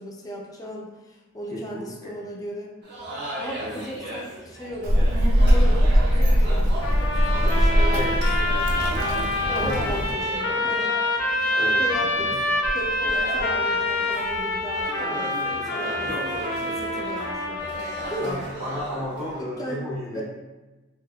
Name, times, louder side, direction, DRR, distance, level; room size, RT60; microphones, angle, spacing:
voice 1, 0.0-2.7 3.3-5.1 5.4-8.9 9.5-10.9 11.8-17.8 18.1-18.4 19.4-20.2, equal, 15° left, -2 dB, 0.4 m, -36 dB
voice 2, 1.5-2.1 3.6-3.8 7.9-8.2 9.5-10.7 11.5-11.8 12.3-12.4 16.0-16.4 18.2-20.2, left 1 dB, 30° right, -9 dB, 1.0 m, -33 dB
sound 1, 2.8-19.4, right 1 dB, 55° right, 0.9 m, -37 dB
Child speech kid speaking, 4.8-10.1, equal, 90° right, 0.5 m, -20 dB
sound 2, 6.8-18.4, left 2 dB, 80° left, 0.6 m, -26 dB
3.3 x 2.6 x 2.3 m, 1.1 s
head